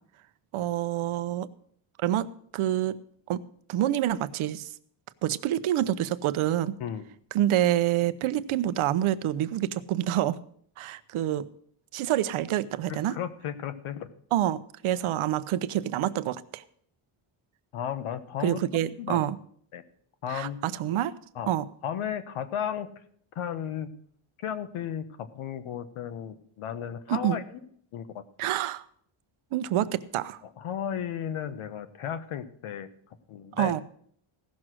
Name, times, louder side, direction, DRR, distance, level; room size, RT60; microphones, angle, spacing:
voice 1, 0.5-1.5 2.0-3.0 3.3-3.4 3.7-4.7 5.2-6.7 7.3-10.4 10.8-11.5 11.9-13.2 14.3-16.6 18.4-19.4 20.3-21.1 21.5-21.7 27.1-27.4 28.4-28.8 29.5-30.4 33.6-33.8, right 12 dB, 80° right, 14 dB, 0.8 m, -27 dB
voice 2, 12.9-14.1 17.7-18.6 19.0-19.3 19.7-19.8 20.2-20.6 21.3-21.5 21.8-22.9 23.3-23.9 24.4-27.4 27.9-28.1 30.6-32.9 33.3-33.7, left 9 dB, 85° left, 11 dB, 1.2 m, -34 dB
16.0 x 6.4 x 6.2 m, 0.62 s
cardioid pair, 165°, 49 cm